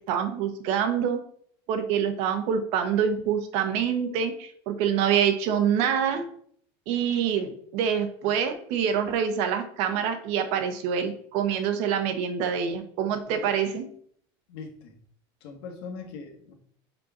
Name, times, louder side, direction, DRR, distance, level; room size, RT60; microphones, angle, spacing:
voice 1, 0.1-1.2 1.7-6.2 6.9-13.8, right 8 dB, 55° right, 7 dB, 1.1 m, -26 dB
voice 2, 14.5-15.0 15.4-16.5, left 5 dB, 85° left, 3 dB, 1.7 m, -40 dB
5.4 x 4.4 x 5.7 m, 0.63 s
cardioid pair, 165°, 13 cm